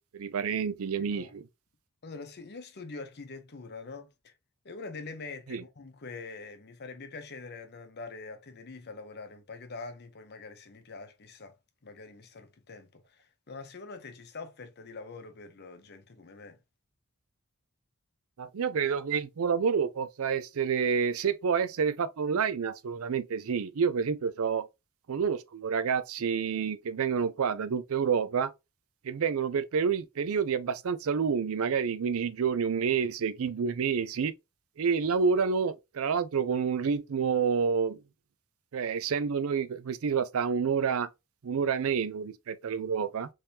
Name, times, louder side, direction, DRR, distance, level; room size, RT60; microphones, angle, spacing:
voice 1, 0.0-1.4 5.5-5.6 18.4-24.7 25.1-28.5 29.0-34.3 34.8-38.0 38.7-41.1 41.4-43.3, right 6 dB, 65° right, 0.4 m, -28 dB
voice 2, 1.0-1.3 2.0-4.3 4.6-11.6 11.8-16.6, left 4 dB, 45° left, 0.7 m, -44 dB
3.4 x 3.2 x 2.7 m
head